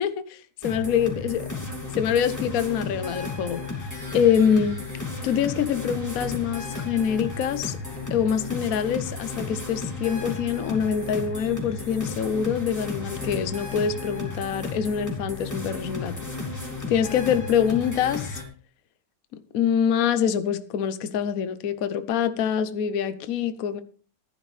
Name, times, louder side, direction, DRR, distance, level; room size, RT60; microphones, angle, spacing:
voice 1, 0.0-1.5 2.0-3.6 4.1-4.8 5.2-7.8 8.1-16.2 16.9-18.4 19.5-23.8, left 8 dB, 55° left, 11 dB, 1.0 m, -25 dB
sound 1, 0.6-18.4, left 3 dB, 10° left, 2.9 m, -34 dB
14.0 x 12.0 x 3.3 m, 0.41 s
omnidirectional pair, 2.3 m